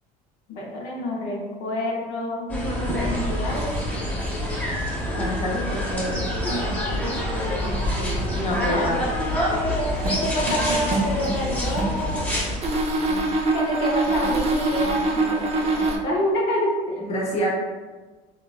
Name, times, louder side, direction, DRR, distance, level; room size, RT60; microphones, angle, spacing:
voice 1, 0.5-2.6 2.9-3.7 6.4-6.8 8.4-9.1 9.5-12.4 13.5-17.0, left 1 dB, 80° left, -3 dB, 0.6 m, -28 dB
sound 1, 2.5-12.6, equal, 10° left, 0.7 m, -26 dB
voice 2, 5.1-6.3 8.3-9.0 17.0-17.5, equal, 35° left, -4 dB, 0.9 m, -27 dB
sound 2, 10.0-12.1 12.6-16.0, right 2 dB, 35° right, 0.5 m, -24 dB
3.3 x 2.2 x 2.2 m, 1.3 s
cardioid pair, 110°, 18 cm